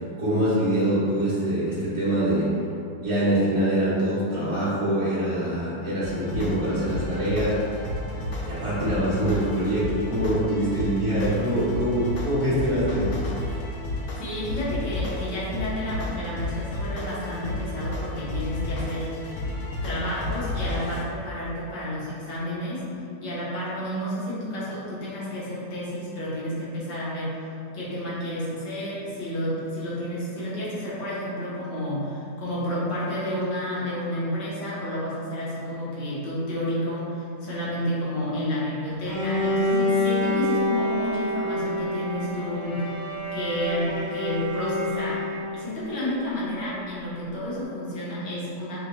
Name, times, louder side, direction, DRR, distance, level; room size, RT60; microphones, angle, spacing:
voice 1, 0.2-2.5 3.0-7.5 8.5-13.1, right 1 dB, 20° right, -12 dB, 1.0 m, -24 dB
sound 1, 6.0-21.0, left 1 dB, 60° left, 0.8 m, -32 dB
voice 2, 14.2-19.1 19.8-22.9 23.2-27.3 27.7-42.8 43.3-45.2 45.5-48.8, left 1 dB, 85° left, -8 dB, 1.7 m, -30 dB
Bowed string instrument, 39.0-45.8, left 1 dB, 40° left, 1.5 m, -27 dB
5.5 x 2.2 x 3.0 m, 2.6 s
omnidirectional pair, 1.8 m